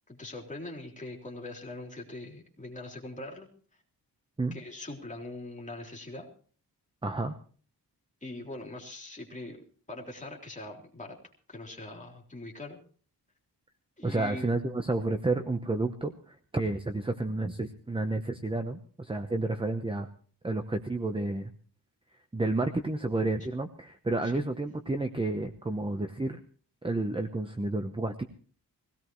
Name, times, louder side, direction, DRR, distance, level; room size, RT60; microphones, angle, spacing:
voice 1, 0.1-3.5 4.5-6.3 8.2-11.2 11.5-12.8 14.0-14.5 24.2-24.4, left 2 dB, 20° left, 0 dB, 3.6 m, -42 dB
voice 2, 7.0-7.3 14.0-20.1 20.4-21.5 22.3-26.4 26.8-28.2, right 2 dB, 15° right, 6 dB, 0.9 m, -30 dB
21.5 x 17.0 x 3.1 m, 0.43 s
wide cardioid pair, 175°, 41 cm